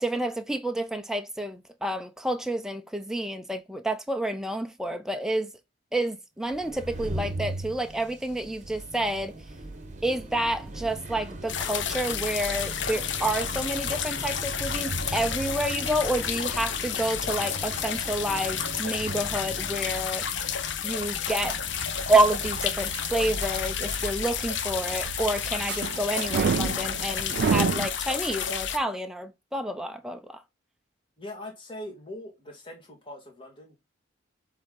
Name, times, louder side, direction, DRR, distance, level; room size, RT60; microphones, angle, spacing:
voice 1, 0.0-5.5 5.9-9.4 10.0-20.3 20.8-21.6 22.1-30.4, right 1 dB, 5° right, 0.6 m, -29 dB
sound 1, 6.5-23.9, right 2 dB, 35° right, 1.1 m, -39 dB
sound 2, 11.5-28.8, left 8 dB, 60° left, 0.8 m, -31 dB
sound 3, 21.1-27.9, right 6 dB, 55° right, 0.3 m, -31 dB
voice 2, 31.2-33.8, left 1 dB, 25° left, 2.7 m, -41 dB
7.6 x 3.7 x 3.9 m
head